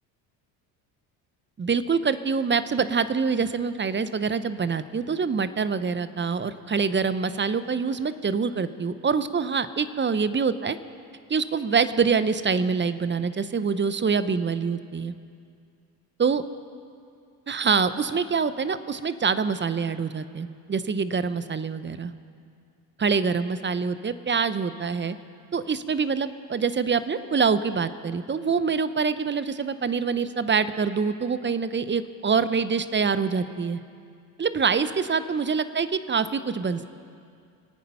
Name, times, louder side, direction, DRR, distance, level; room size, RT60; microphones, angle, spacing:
voice 1, 1.6-10.8 11.3-15.1 16.2-16.4 17.5-22.1 23.0-25.2 25.5-33.8 34.4-36.8, right 5 dB, 25° right, 13 dB, 0.8 m, -25 dB
24.5 x 9.3 x 5.6 m, 2.3 s
hypercardioid pair, 65°, 48 cm